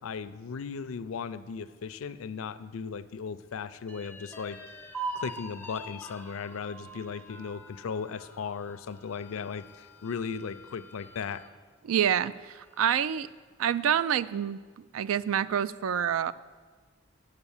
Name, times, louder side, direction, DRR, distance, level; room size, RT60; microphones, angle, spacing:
voice 1, 0.0-4.6 5.1-11.4, left 6 dB, 90° left, 14 dB, 0.4 m, -37 dB
sound 1, 3.9-11.5 12.0-12.1 12.5-13.1, right 2 dB, 10° left, 0.6 m, -44 dB
voice 2, 11.8-13.3 13.6-14.6 14.9-16.3, right 9 dB, 80° right, 17 dB, 0.3 m, -27 dB
8.2 x 6.8 x 7.1 m, 1.5 s
head